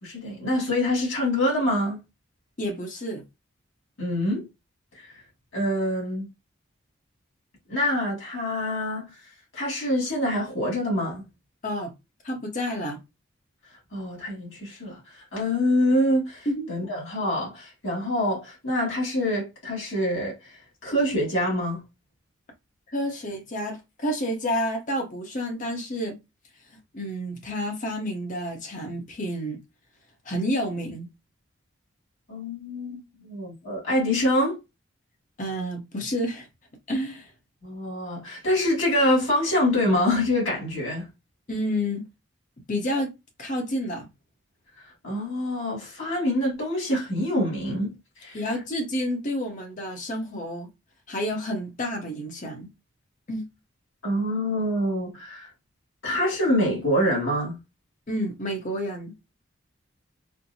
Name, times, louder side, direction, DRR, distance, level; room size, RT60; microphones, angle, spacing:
voice 1, 0.0-2.0 4.0-4.5 4.9-5.1 5.5-6.3 7.7-9.2 9.5-11.3 13.9-20.5 20.8-21.8 32.3-34.6 37.6-41.1 45.0-48.4 54.0-55.5 56.0-57.6, left 1 dB, 70° left, 2.2 m, -25 dB
voice 2, 2.6-3.2 11.6-11.9 12.2-13.0 16.5-16.7 22.9-26.2 26.9-29.6 30.2-31.1 35.4-36.5 36.9-37.3 41.5-42.1 42.7-43.1 43.4-44.1 48.3-50.7 51.1-52.7 53.3-53.5 58.1-59.1, equal, 40° left, 0.8 m, -29 dB
4.4 x 2.1 x 2.7 m
head